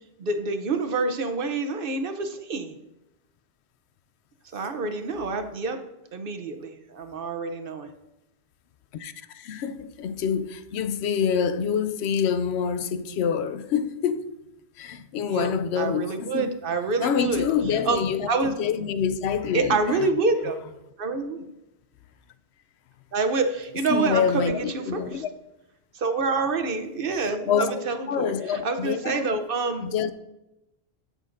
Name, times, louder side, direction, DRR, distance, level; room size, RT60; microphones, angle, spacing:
voice 1, 0.2-2.7 4.5-5.8 6.1-7.9 15.3-18.0 18.3-18.5 19.5-20.6 21.0-21.4 23.1-25.2 25.9-29.9, right 3 dB, 60° right, 0.9 m, -27 dB
voice 2, 8.9-14.3 14.8-16.5 17.0-20.1 23.9-25.3 27.5-27.8 28.1-29.3 29.8-30.1, left 7 dB, 85° left, 0.8 m, -26 dB
15.5 x 6.3 x 2.6 m
omnidirectional pair, 1.1 m